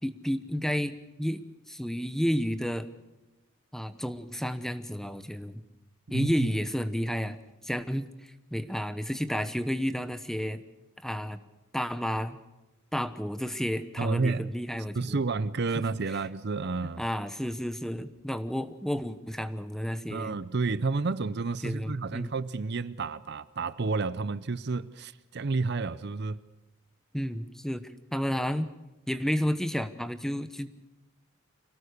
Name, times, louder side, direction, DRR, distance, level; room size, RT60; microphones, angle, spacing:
voice 1, 0.0-2.9 3.7-5.6 6.1-7.4 7.6-10.6 11.0-11.4 11.7-12.4 12.9-15.2 17.0-20.4 21.6-22.3 27.1-27.8 28.1-28.7 29.1-30.7, equal, ahead, 1.0 m, -31 dB
voice 2, 6.1-6.5 14.0-14.5 15.0-17.0 20.1-26.4, right 3 dB, 50° right, 0.6 m, -30 dB
25.5 x 18.0 x 6.7 m
head